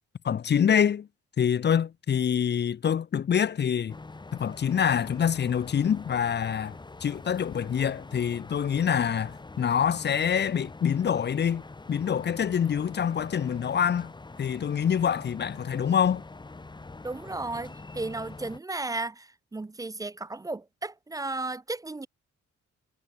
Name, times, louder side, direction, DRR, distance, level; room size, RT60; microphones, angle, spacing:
voice 1, 0.2-1.1 1.4-4.0 4.3-14.1 14.4-16.2, left 8 dB, 35° left, 0.7 m, -26 dB
sound 1, 3.9-18.6, left 3 dB, 15° left, 2.3 m, -44 dB
voice 2, 17.0-19.3 19.5-22.1, right 2 dB, 10° right, 0.5 m, -34 dB
wide cardioid pair, 175°, 31 cm